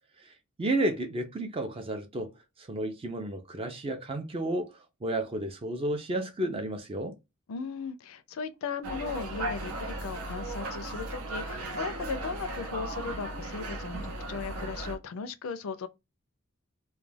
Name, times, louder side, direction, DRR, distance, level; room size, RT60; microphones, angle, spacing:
voice 1, 0.6-2.3 2.6-4.7 5.0-7.2, right 1 dB, 25° right, 0.4 m, -32 dB
voice 2, 7.5-15.9, left 5 dB, 70° left, 0.4 m, -37 dB
sound 1, 8.8-15.0, right 2 dB, 80° right, 0.6 m, -36 dB
2.3 x 2.2 x 3.2 m
head